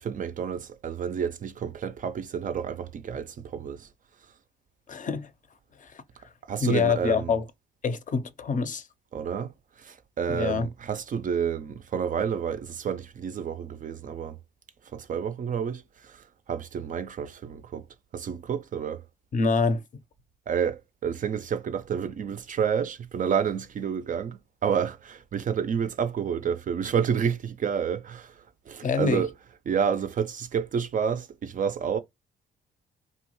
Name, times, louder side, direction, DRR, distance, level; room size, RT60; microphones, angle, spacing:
voice 1, 0.0-3.9 6.4-7.4 9.1-14.4 14.8-17.9 18.1-19.0 20.5-29.3 29.7-32.0, right 7 dB, 40° right, 0.4 m, -30 dB
voice 2, 4.9-5.3 5.8-5.9 6.6-7.4 7.8-8.8 10.3-10.7 19.3-19.8 28.8-29.2, left 5 dB, 40° left, 0.5 m, -25 dB
2.9 x 2.1 x 3.0 m
cardioid pair, 90°, 20 cm